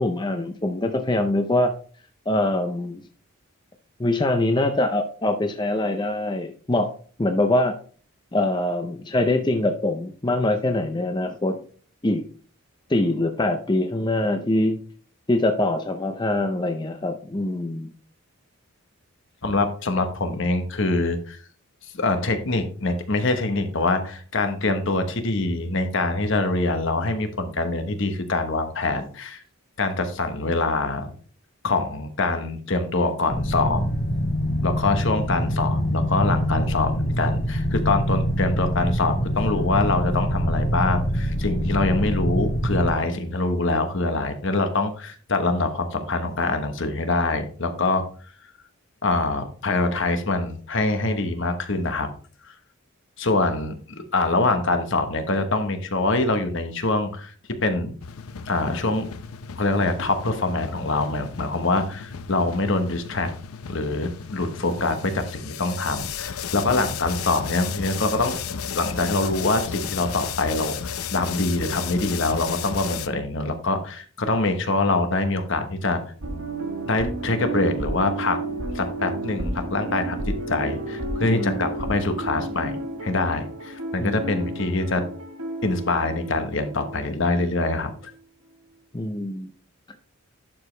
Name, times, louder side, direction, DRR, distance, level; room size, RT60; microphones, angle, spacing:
voice 1, 0.0-1.7 2.3-3.0 4.0-6.9 7.2-7.8 8.3-11.6 12.0-12.2 12.9-14.8 15.3-17.9 66.7-66.9 81.2-81.6 84.0-84.2 88.9-89.5, left 1 dB, 20° left, 6 dB, 0.5 m, -23 dB
voice 2, 19.4-21.4 21.9-29.4 29.8-31.1 31.6-33.8 34.6-48.0 49.0-52.1 53.2-57.3 57.6-57.9 58.4-59.1 59.6-63.3 63.7-76.0 76.8-78.4 78.7-85.0 85.6-87.9, left 2 dB, 55° left, 8 dB, 1.1 m, -24 dB
sound 1, 33.3-43.0, equal, 40° left, 2.5 m, -25 dB
sound 2, 58.0-73.1, left 7 dB, 80° left, 0.6 m, -34 dB
sound 3, 76.2-87.6 87.9-88.0, right 2 dB, 90° right, 1.4 m, -32 dB
11.0 x 5.0 x 3.3 m, 0.43 s
head